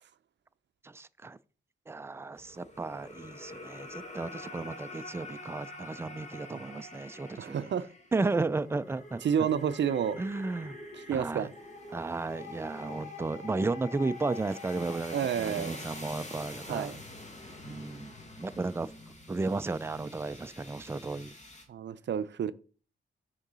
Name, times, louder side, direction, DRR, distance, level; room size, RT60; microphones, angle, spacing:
voice 1, 0.8-1.4 1.9-7.7 8.1-9.2 10.2-10.8 11.1-11.5 11.9-16.9 17.6-18.9 19.3-21.3, right 3 dB, 10° right, 0.4 m, -34 dB
sound 1, 2.4-21.6, left 2 dB, 35° left, 1.7 m, -46 dB
voice 2, 7.4-7.9 9.2-10.2 11.1-11.5 11.9-12.0 15.1-15.8 16.7-17.0 21.7-22.5, right 8 dB, 65° right, 0.5 m, -30 dB
6.4 x 3.8 x 6.1 m
cardioid pair, 80°, 20 cm